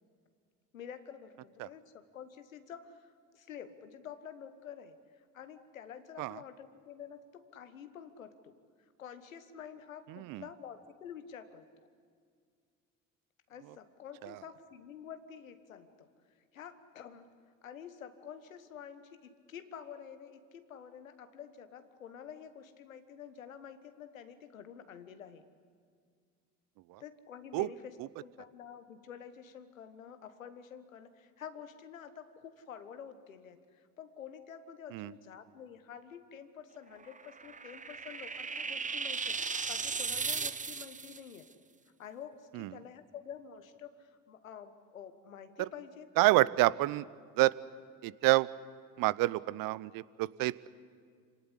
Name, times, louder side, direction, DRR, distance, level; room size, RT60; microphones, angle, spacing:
voice 1, 0.7-8.6 9.0-11.6 13.5-16.1 16.5-17.3 17.6-25.4 27.0-41.5 42.0-46.5, left 8 dB, 90° left, 10 dB, 1.4 m, -49 dB
voice 2, 10.1-10.4 14.2-14.3 26.9-27.0 27.5-27.7 34.9-35.1 42.5-42.7 45.6-45.7 46.2-47.0 47.4-47.5 48.0-48.5 49.0-50.7, right 19 dB, 60° right, 20 dB, 0.8 m, -28 dB
sound 1, 37.0-41.2, right 5 dB, 20° right, 1.0 m, -36 dB
27.5 x 18.5 x 9.9 m, 2.1 s
hypercardioid pair, 60°, 39 cm